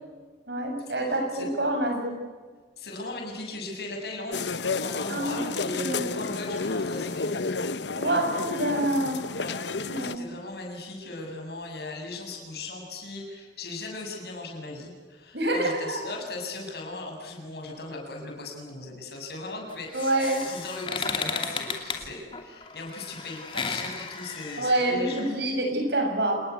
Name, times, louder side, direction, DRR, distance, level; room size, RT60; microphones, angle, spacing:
voice 1, 0.5-2.1 5.1-5.4 5.8-6.1 7.9-9.2 9.8-10.2 15.3-16.0 19.9-20.4 24.6-26.4, right 1 dB, 70° right, 3 dB, 7.7 m, -27 dB
voice 2, 1.1-1.5 2.8-7.4 9.4-9.6 10.0-20.2 20.5-25.3, left 2 dB, 60° left, 1 dB, 7.2 m, -38 dB
sound 1, 4.3-10.1, left 4 dB, 75° left, 1.0 m, -31 dB
sound 2, 19.7-25.3, left 5 dB, 30° left, 2.8 m, -34 dB
28.5 x 20.5 x 8.3 m, 1.4 s
head